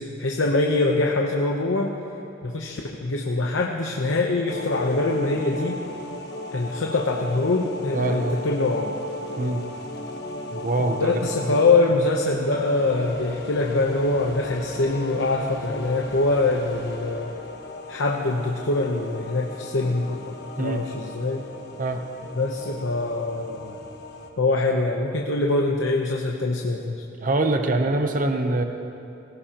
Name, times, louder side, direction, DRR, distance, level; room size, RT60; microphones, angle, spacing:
voice 1, 0.0-2.0 2.4-5.8 6.5-9.0 11.0-17.3 17.9-21.4 22.4-23.8 24.4-27.0, left 2 dB, 75° left, 0 dB, 0.9 m, -24 dB
sound 1, 4.5-24.3, left 2 dB, 60° left, 1.3 m, -36 dB
voice 2, 7.9-8.4 9.4-9.6 10.5-11.5 20.6-20.8 21.8-22.0 27.2-28.6, right 2 dB, 45° right, 6 dB, 0.8 m, -24 dB
19.5 x 17.0 x 3.0 m, 2.8 s
head